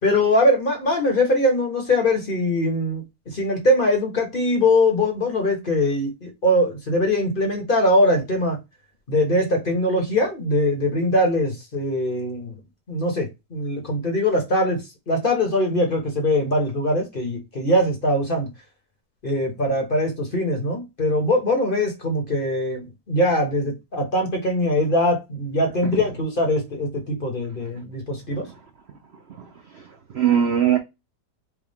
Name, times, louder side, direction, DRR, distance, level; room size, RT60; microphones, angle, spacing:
voice 1, 0.0-8.6 9.1-12.5 12.9-18.5 19.2-28.5, left 1 dB, 35° left, 1.2 m, -22 dB
voice 2, 29.3-30.8, right 9 dB, 65° right, 0.6 m, -22 dB
4.8 x 2.4 x 3.4 m
omnidirectional pair, 1.8 m